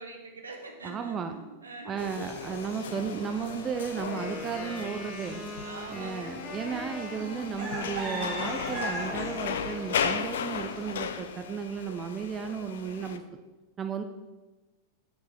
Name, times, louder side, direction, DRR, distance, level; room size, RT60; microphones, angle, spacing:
voice 1, 0.0-2.2 5.6-6.4, right 2 dB, 75° right, 3 dB, 1.1 m, -44 dB
voice 2, 0.8-1.3 1.9-5.4 5.9-13.2 13.8-14.0, right 6 dB, 25° right, 7 dB, 0.5 m, -34 dB
sound 1, 2.0-13.2, left 7 dB, 60° left, 0.5 m, -36 dB
sound 2, 2.2-10.9, right 1 dB, 50° right, 2.1 m, -41 dB
Wind instrument woodwind instrument, 4.0-10.2, left 2 dB, 30° left, 1.8 m, -41 dB
6.4 x 4.7 x 6.7 m, 1.2 s
figure-of-eight pair, 90°, 0 cm